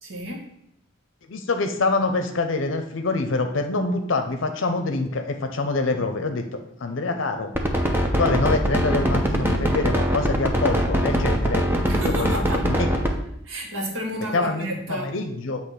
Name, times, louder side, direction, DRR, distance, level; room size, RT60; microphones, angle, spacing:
voice 1, 0.0-0.5 11.9-12.7 13.4-15.2, equal, 90° right, 0 dB, 1.6 m, -31 dB
voice 2, 1.3-7.5 8.2-11.6 12.0-12.9 14.3-15.6, left 3 dB, 80° left, 6 dB, 0.7 m, -25 dB
sound 1, 7.6-13.1, equal, 10° right, 0.7 m, -22 dB
7.9 x 3.0 x 5.8 m, 0.76 s
head